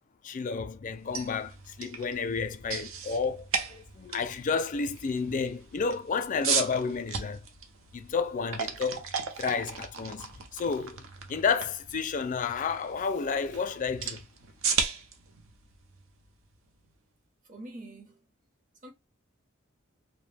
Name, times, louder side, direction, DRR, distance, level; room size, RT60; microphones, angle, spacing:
voice 1, 0.2-7.5 7.9-9.0 9.4-14.2, left 5 dB, 40° left, 0.4 m, -31 dB
sound 1, 0.9-16.9, right 6 dB, 75° right, 0.6 m, -36 dB
voice 2, 17.4-18.3 18.8-18.9, right 1 dB, 40° right, 0.9 m, -45 dB
2.5 x 2.1 x 3.2 m
head